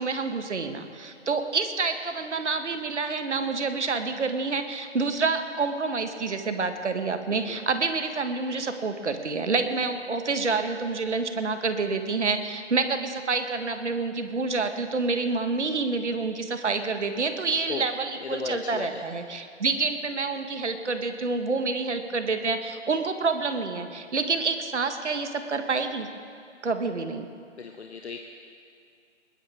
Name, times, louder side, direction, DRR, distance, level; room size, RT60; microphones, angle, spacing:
voice 1, 0.0-26.1 26.6-27.3, right 4 dB, 65° right, 7 dB, 1.6 m, -28 dB
voice 2, 18.2-19.0 27.6-28.3, left 5 dB, 60° left, 4 dB, 1.1 m, -35 dB
20.5 x 19.0 x 3.6 m, 2.4 s
figure-of-eight pair, 150°, 37 cm